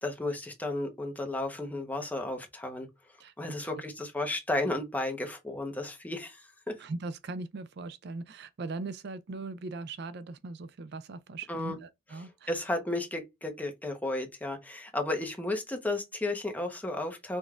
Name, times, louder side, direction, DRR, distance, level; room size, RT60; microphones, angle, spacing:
voice 1, 0.0-2.9 3.4-6.8 11.5-11.7 12.5-17.4, left 2 dB, 10° left, 1.0 m, -33 dB
voice 2, 3.2-3.7 6.8-12.5, right 3 dB, 60° right, 0.4 m, -40 dB
5.1 x 3.5 x 2.4 m
head